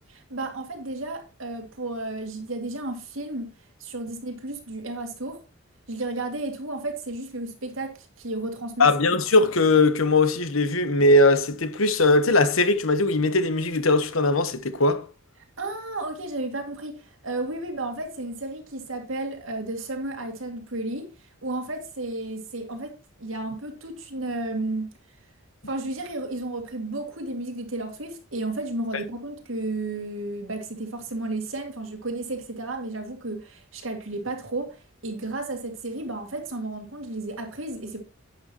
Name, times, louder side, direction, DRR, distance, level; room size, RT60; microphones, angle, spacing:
voice 1, 0.3-3.5 3.8-5.4 5.9-8.9 15.6-21.1 21.4-24.9 25.7-34.8 35.0-38.0, right 2 dB, 70° right, 2.3 m, -33 dB
voice 2, 8.8-15.0, left 2 dB, 80° left, 1.2 m, -20 dB
11.0 x 8.8 x 3.0 m
head